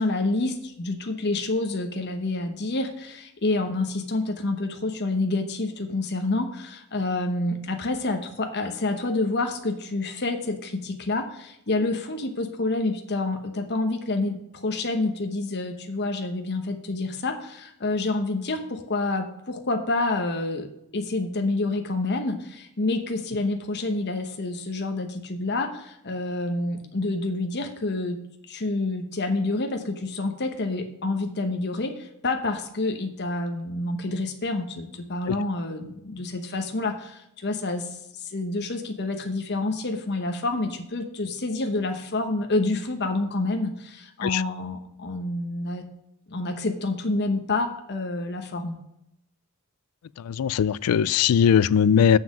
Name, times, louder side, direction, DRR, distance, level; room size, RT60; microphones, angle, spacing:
voice 1, 0.0-28.2 28.5-45.9 46.3-48.8, left 2 dB, 50° left, 1.0 m, -28 dB
voice 2, 50.3-52.2, left 8 dB, 80° left, 0.3 m, -20 dB
7.4 x 5.9 x 7.5 m
head